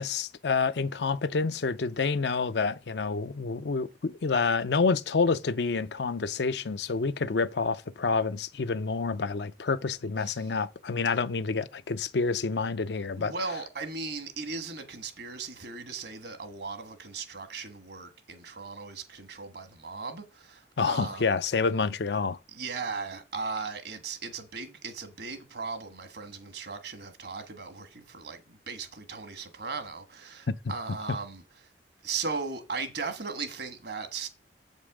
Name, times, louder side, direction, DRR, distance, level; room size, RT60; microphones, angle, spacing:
voice 1, 0.0-13.3 20.8-22.4, left 4 dB, 70° left, 0.5 m, -28 dB
voice 2, 10.2-10.5 13.1-21.2 22.5-31.4 32.0-34.3, right 4 dB, 65° right, 1.5 m, -37 dB
7.9 x 5.4 x 4.9 m
head